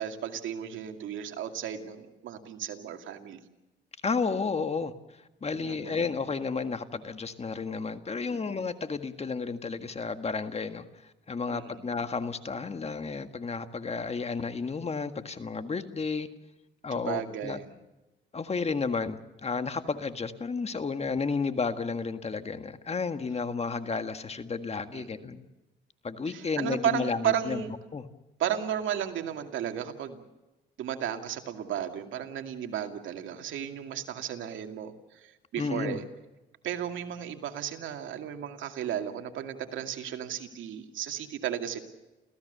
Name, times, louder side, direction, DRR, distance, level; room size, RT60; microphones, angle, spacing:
voice 1, 0.0-3.4 5.5-6.1 8.2-8.4 11.5-11.8 16.9-17.7 24.9-25.3 26.3-27.7 28.4-30.2 30.8-36.0 36.6-41.8, right 9 dB, 80° right, 5 dB, 2.4 m, -34 dB
voice 2, 4.0-16.3 16.8-17.6 18.3-25.4 26.0-27.6 27.9-28.0 35.6-36.0, left 4 dB, 30° left, 8 dB, 1.7 m, -32 dB
29.5 x 15.5 x 6.8 m, 1.1 s
cardioid pair, 90°, 20 cm